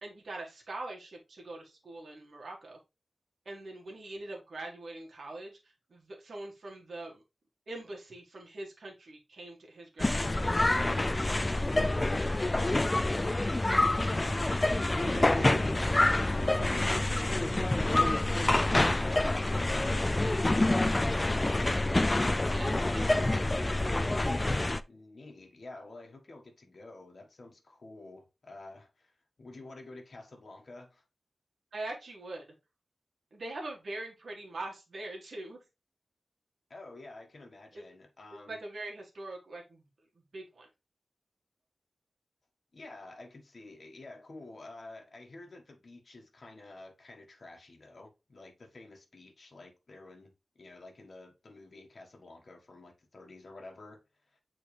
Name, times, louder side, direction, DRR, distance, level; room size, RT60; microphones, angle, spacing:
voice 1, 0.0-2.8 3.4-7.2 7.7-10.6 15.0-15.2 22.4-23.2 31.7-32.4 33.3-35.6 37.7-37.8 38.5-39.8 40.3-40.7, right 2 dB, 75° right, 1.7 m, -43 dB
sound 1, 10.0-24.8, left 2 dB, 25° left, 0.4 m, -27 dB
voice 2, 11.8-12.5 13.1-16.6 18.7-22.0 24.9-29.1 29.4-31.0 36.7-38.6 42.7-54.0 54.3-54.4, left 2 dB, 60° left, 1.6 m, -50 dB
7.6 x 4.0 x 3.4 m
wide cardioid pair, 90°, 0 cm